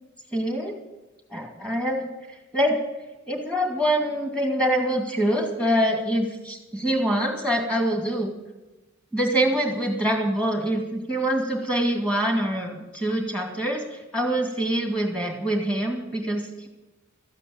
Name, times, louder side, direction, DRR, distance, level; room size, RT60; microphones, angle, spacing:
voice 1, 0.3-0.8 1.3-2.1 2.5-2.8 3.3-8.3 9.1-16.7, right 1 dB, 5° left, 2 dB, 2.3 m, -25 dB
13.5 x 9.1 x 8.7 m, 1.1 s
head